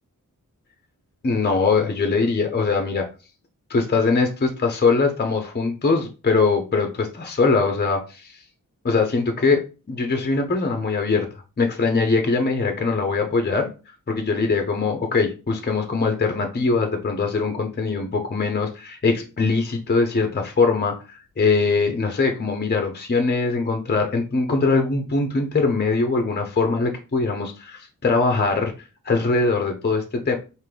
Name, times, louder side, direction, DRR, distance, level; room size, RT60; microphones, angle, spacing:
voice 1, 1.2-3.1 3.7-8.4 8.8-9.6 9.9-11.3 11.6-13.7 14.1-30.4, left 4 dB, 30° left, 4 dB, 0.6 m, -22 dB
3.6 x 2.6 x 3.2 m, 0.33 s
cardioid pair, 60°, 36 cm